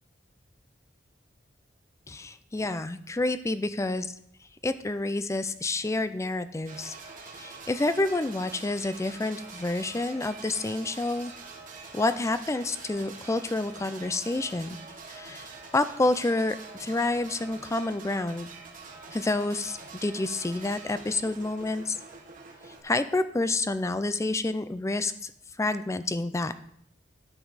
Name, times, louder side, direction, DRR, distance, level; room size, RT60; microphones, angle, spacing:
voice 1, 2.1-4.1 4.6-7.0 7.3-11.3 11.9-14.8 15.1-18.5 19.1-22.0 22.8-25.3 25.6-26.5, left 2 dB, 15° left, 11 dB, 0.4 m, -29 dB
sound 1, 6.7-22.8, right 4 dB, 45° right, 1.4 m, -45 dB
12.5 x 4.8 x 4.1 m, 0.69 s
head